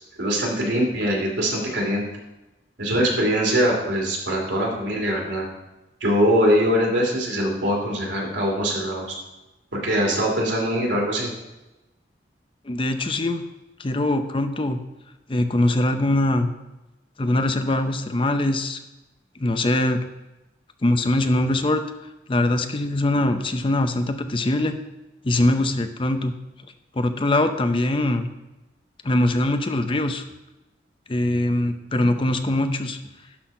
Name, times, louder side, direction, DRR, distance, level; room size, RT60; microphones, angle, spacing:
voice 1, 0.2-2.0 2.8-5.4 6.0-9.1 9.8-11.3, equal, 80° right, -2 dB, 2.7 m, -22 dB
voice 2, 12.7-13.4 13.8-14.8 15.3-16.5 17.2-18.8 19.4-20.0 20.8-21.8 22.3-24.8 25.2-26.3 26.9-28.3 29.0-30.2 31.1-33.0, left 1 dB, 30° left, 8 dB, 0.5 m, -22 dB
12.0 x 4.2 x 5.4 m, 1.0 s
head